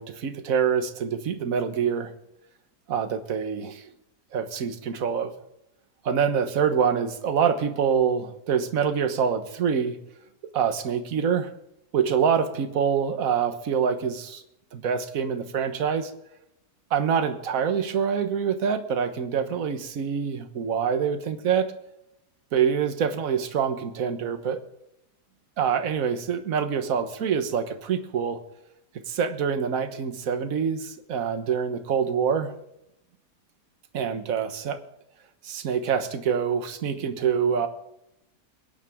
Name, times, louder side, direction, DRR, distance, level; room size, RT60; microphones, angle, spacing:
voice 1, 0.0-2.1 2.9-3.9 4.3-5.3 6.0-10.0 10.5-11.5 11.9-14.4 14.7-16.1 16.9-21.7 22.5-24.6 25.6-28.4 29.1-32.6 33.9-34.8 35.4-37.7, right 7 dB, 55° right, 8 dB, 1.6 m, -25 dB
22.5 x 10.0 x 3.6 m, 0.83 s
omnidirectional pair, 1.8 m